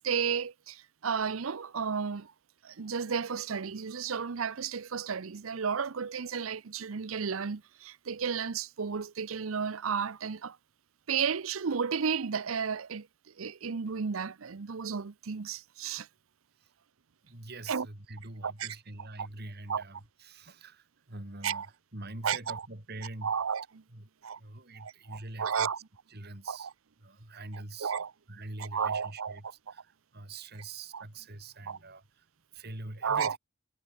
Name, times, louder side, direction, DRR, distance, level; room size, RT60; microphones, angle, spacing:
voice 1, 0.0-2.3 2.6-10.6 11.1-13.1 13.4-16.1 17.7-17.9 18.4-18.7 19.2-19.3 19.7-19.8 21.4-21.7 22.2-22.6 23.2-23.7 24.2-24.4 24.8-25.8 26.5-26.7 27.8-28.1 28.6-29.4 30.9-31.0 31.7-31.8 33.0-33.4, right 6 dB, 80° right, 0.7 m, -33 dB
voice 2, 17.2-23.3 23.9-24.1 24.4-25.7 26.1-26.7 27.0-27.9 28.3-32.3 32.5-33.4, right 2 dB, 50° right, 3.2 m, -44 dB
head